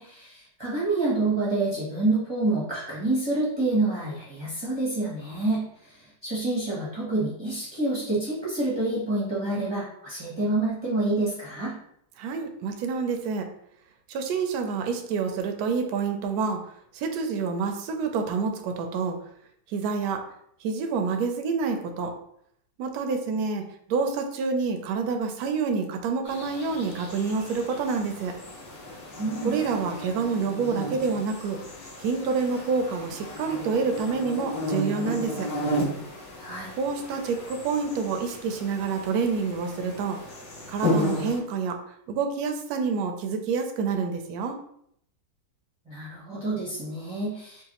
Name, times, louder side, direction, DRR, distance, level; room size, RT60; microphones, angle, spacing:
voice 1, 0.0-11.7 29.2-29.5 36.4-36.7 45.9-47.6, right 2 dB, 25° right, -7 dB, 0.5 m, -27 dB
voice 2, 12.2-13.5 14.1-16.6 16.9-19.2 19.7-20.2 20.6-22.1 22.8-23.6 23.9-28.3 29.4-31.6 32.0-35.5 36.8-40.2 40.7-41.8 42.1-44.6, right 5 dB, 70° right, 5 dB, 0.9 m, -27 dB
sound 1, 26.3-41.4, left 1 dB, 60° left, 1.6 m, -34 dB
4.7 x 2.4 x 2.9 m, 0.71 s
omnidirectional pair, 2.1 m